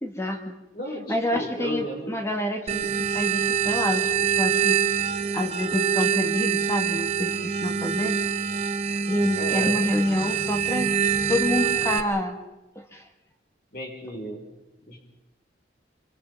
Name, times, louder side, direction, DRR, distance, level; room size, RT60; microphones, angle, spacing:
voice 1, 0.0-0.6 1.1-4.8 5.3-8.2 9.1-10.9 11.3-12.4 12.8-13.0, left 1 dB, 15° left, 4 dB, 1.9 m, -27 dB
voice 2, 0.7-2.1 9.3-9.8 13.7-14.4 14.9-15.0, equal, 55° left, 1 dB, 5.6 m, -33 dB
sound 1, 2.7-12.0, right 7 dB, 35° right, 1.4 m, -25 dB
25.5 x 25.0 x 5.5 m, 0.97 s
head